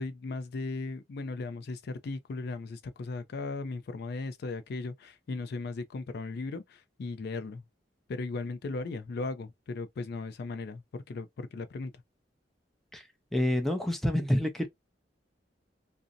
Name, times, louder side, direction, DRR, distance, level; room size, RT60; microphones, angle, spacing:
voice 1, 0.0-7.6 8.1-11.9, left 3 dB, 60° left, 0.4 m, -37 dB
voice 2, 13.3-14.7, left 1 dB, ahead, 0.5 m, -27 dB
2.5 x 2.0 x 2.4 m
head